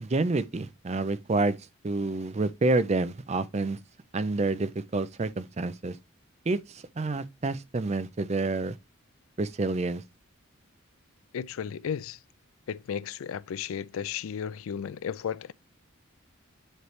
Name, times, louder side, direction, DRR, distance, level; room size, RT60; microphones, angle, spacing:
voice 1, 0.0-1.6 1.8-3.8 4.1-6.0 6.5-8.8 9.4-10.0, right 3 dB, 30° right, 0.4 m, -28 dB
voice 2, 11.3-12.2 12.7-15.5, left 7 dB, 75° left, 0.3 m, -34 dB
9.3 x 3.2 x 3.1 m
head